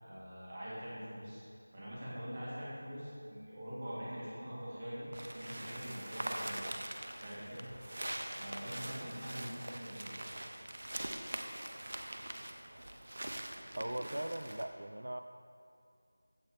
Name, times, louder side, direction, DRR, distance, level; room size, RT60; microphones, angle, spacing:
voice 1, 0.0-1.5 1.7-5.1 5.3-6.6 7.2-7.7 8.3-10.2, equal, 20° right, -9 dB, 2.7 m, -44 dB
sound 1, 5.1-14.7, right 1 dB, 50° right, 0.9 m, -43 dB
voice 2, 13.8-15.2, right 1 dB, 75° right, 8 dB, 0.5 m, -39 dB
15.5 x 9.5 x 3.2 m, 2.5 s
figure-of-eight pair, 180°, 0 cm